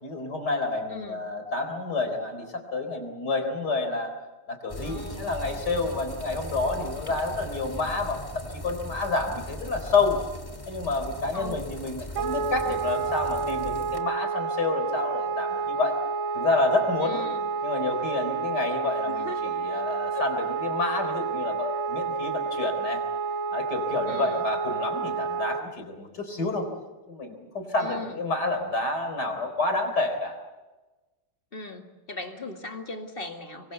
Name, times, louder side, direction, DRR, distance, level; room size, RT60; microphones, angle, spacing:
voice 1, 0.0-4.1 4.5-10.2 10.7-16.0 16.3-17.2 17.6-23.0 23.5-26.7 27.1-30.4, left 3 dB, 50° left, 6 dB, 4.6 m, -29 dB
voice 2, 0.9-1.2 4.8-5.3 11.3-11.7 17.0-17.4 19.1-19.5 20.1-20.3 24.1-24.5 27.8-28.2 31.5-33.7, left 2 dB, 25° left, 4 dB, 2.1 m, -38 dB
sound 1, 4.7-14.0, equal, 10° left, 1.5 m, -39 dB
Wind instrument woodwind instrument, 12.1-25.6, right 5 dB, 70° right, 2.0 m, -30 dB
26.5 x 22.5 x 8.0 m, 1.2 s
omnidirectional pair, 2.3 m